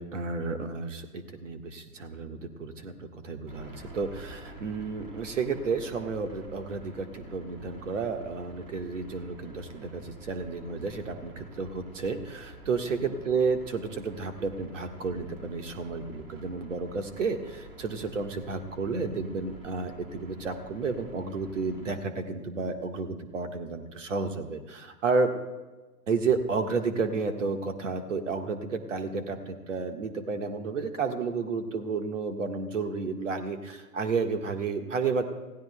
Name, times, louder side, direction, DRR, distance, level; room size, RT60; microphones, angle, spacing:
voice 1, 0.0-25.3 26.1-35.3, right 4 dB, 50° right, 6 dB, 1.6 m, -31 dB
sound 1, 3.5-21.9, right 1 dB, 35° right, 4.5 m, -48 dB
30.0 x 16.0 x 2.2 m, 1.2 s
figure-of-eight pair, 125°, 48 cm